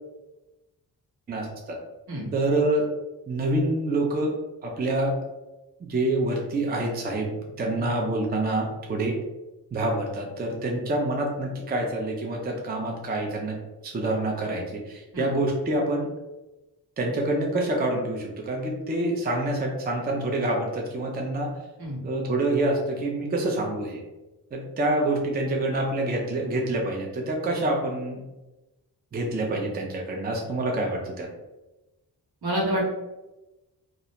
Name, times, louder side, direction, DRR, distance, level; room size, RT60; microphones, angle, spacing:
voice 1, 1.3-1.8 2.3-2.9 3.3-4.3 4.6-5.2 5.8-7.3 7.6-9.2 9.7-13.6 13.8-16.1 17.0-21.5 22.0-24.0 24.5-28.2 29.1-31.3, right 2 dB, 25° right, 0 dB, 0.4 m, -27 dB
voice 2, 32.4-32.8, right 1 dB, 80° right, -6 dB, 1.2 m, -27 dB
2.4 x 2.1 x 2.8 m, 1.0 s
wide cardioid pair, 95°, 37 cm